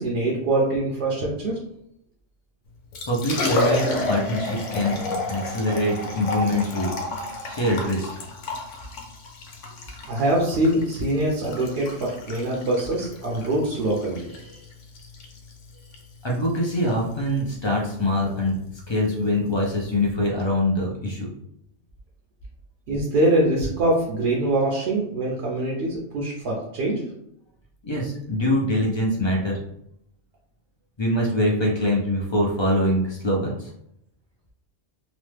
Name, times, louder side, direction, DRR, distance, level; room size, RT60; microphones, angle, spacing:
voice 1, 0.0-1.6 10.1-14.6 22.9-27.0, right 1 dB, 70° right, -3 dB, 0.9 m, -24 dB
Liquid, 2.7-20.1, left 2 dB, 85° left, 1.0 m, -32 dB
voice 2, 3.1-5.0 5.3-6.9 7.4-8.1 16.2-18.6 18.9-21.3 27.8-29.6 31.0-33.7, left 1 dB, 45° left, -2 dB, 0.3 m, -24 dB
3.0 x 2.1 x 3.2 m, 0.77 s
omnidirectional pair, 1.2 m